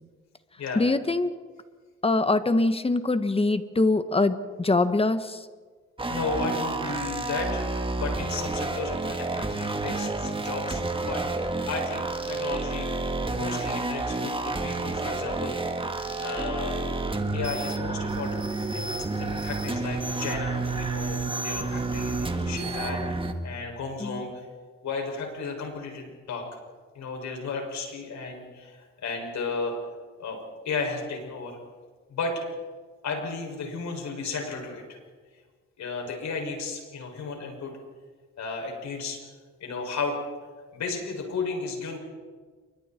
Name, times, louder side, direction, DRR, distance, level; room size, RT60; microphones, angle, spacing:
voice 1, 0.7-1.3 2.0-5.5 24.0-24.2, left 2 dB, 20° left, 11 dB, 1.5 m, -23 dB
sound 1, 6.0-23.3, right 3 dB, 15° right, 2.1 m, -30 dB
voice 2, 6.1-7.7 7.9-12.9 13.3-15.6 16.2-16.8 17.3-18.5 18.7-24.3 24.8-26.5 26.9-29.7 30.2-30.4 30.6-31.6 32.1-32.4 33.0-35.0 35.8-37.8 38.4-39.2 39.6-40.2 40.7-42.0, left 4 dB, 65° left, 2 dB, 6.7 m, -34 dB
29.0 x 24.0 x 4.6 m, 1.5 s
cardioid pair, 90°, 30 cm